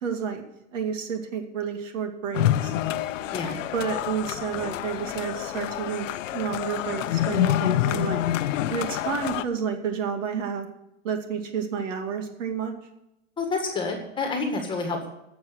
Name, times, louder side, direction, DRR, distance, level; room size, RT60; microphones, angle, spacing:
voice 1, 0.0-0.4 0.7-2.7 3.7-6.1 6.3-8.2 8.7-10.7 11.0-12.7, right 7 dB, 70° right, 5 dB, 2.4 m, -30 dB
sound 1, 2.3-9.4, left 13 dB, 70° left, 0.8 m, -27 dB
voice 2, 13.4-15.1, left 3 dB, 10° left, 3 dB, 1.7 m, -28 dB
12.0 x 7.3 x 7.9 m, 0.85 s
supercardioid pair, 160°, 39 cm